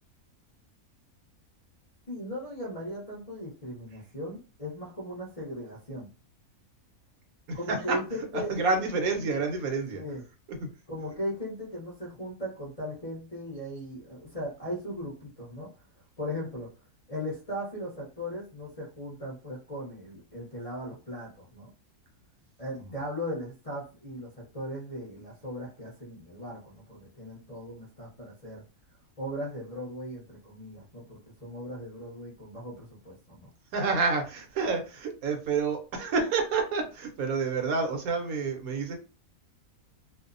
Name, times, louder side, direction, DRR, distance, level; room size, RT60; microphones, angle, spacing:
voice 1, 2.1-6.1 7.5-8.9 9.9-10.2 10.9-15.7 16.2-16.7 17.1-21.7 22.6-28.6 29.2-33.5, equal, 35° left, -6 dB, 0.6 m, -38 dB
voice 2, 7.5-8.0 8.3-10.0 10.6-10.7 22.8-22.9 33.7-39.0, right 4 dB, 75° right, 4 dB, 1.1 m, -29 dB
2.6 x 2.0 x 2.5 m, 0.32 s
omnidirectional pair, 1.5 m